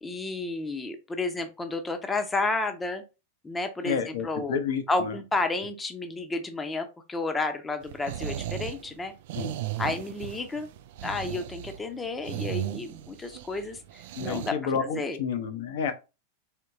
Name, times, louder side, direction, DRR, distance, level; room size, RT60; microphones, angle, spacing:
voice 1, 0.0-3.0 3.4-4.6 4.9-9.1 9.8-10.7 11.0-15.2, left 3 dB, 15° left, 0.7 m, -31 dB
voice 2, 3.8-5.1 9.4-9.6 14.2-15.9, left 6 dB, 55° left, 0.7 m, -30 dB
sound 1, 7.8-14.5, right 12 dB, 55° right, 0.3 m, -36 dB
4.4 x 3.6 x 2.6 m
figure-of-eight pair, 90°, 0 cm